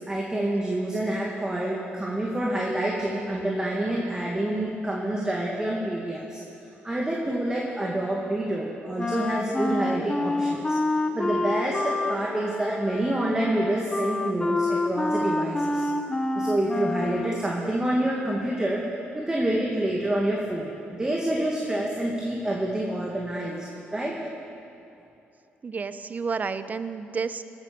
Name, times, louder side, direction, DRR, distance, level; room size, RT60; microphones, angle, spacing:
voice 1, 0.0-6.4 6.8-10.8 11.1-15.9 16.3-18.8 19.1-23.7 23.9-24.1, right 1 dB, 15° right, -3 dB, 2.1 m, -27 dB
Wind instrument woodwind instrument, 9.0-17.6, left 2 dB, 20° left, 0.8 m, -28 dB
voice 2, 25.6-27.4, right 5 dB, 40° right, 12 dB, 0.7 m, -30 dB
17.5 x 9.0 x 6.9 m, 2.8 s
cardioid pair, 80°, 4 cm